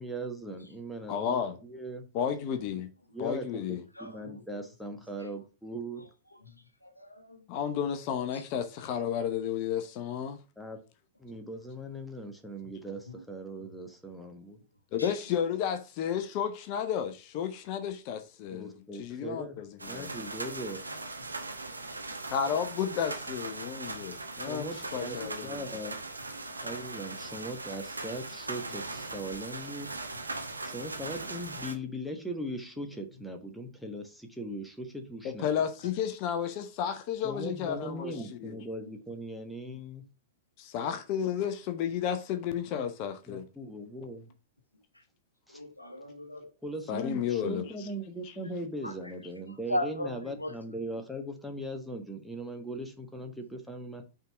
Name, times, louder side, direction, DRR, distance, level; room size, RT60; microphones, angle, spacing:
voice 1, 0.0-2.1 3.1-6.0 10.6-10.8 11.2-14.6 18.5-19.6 19.9-20.8 24.5-26.0 26.6-29.9 30.6-35.5 37.2-40.0 42.7-42.8 43.3-44.3 45.5-45.6 46.6-54.0, right 1 dB, ahead, 1.3 m, -39 dB
voice 2, 1.1-1.6 2.1-2.9 3.2-3.8 7.5-10.4 14.9-18.7 19.0-20.1 22.3-25.6 35.2-38.6 40.6-43.4 46.9-47.6, left 8 dB, 40° left, 0.8 m, -32 dB
voice 3, 4.0-4.4 5.2-5.3 6.0-6.1 6.8-7.4 13.1-13.2 13.6-13.7 15.0-15.2 25.2-25.3 35.8-35.9 38.1-38.2 45.5-46.9 48.8-49.1 49.7-50.5, left 1 dB, 90° left, 1.0 m, -38 dB
sound 1, 19.8-31.7, right 2 dB, 85° right, 1.0 m, -39 dB
5.6 x 3.8 x 5.7 m
figure-of-eight pair, 100°, 0 cm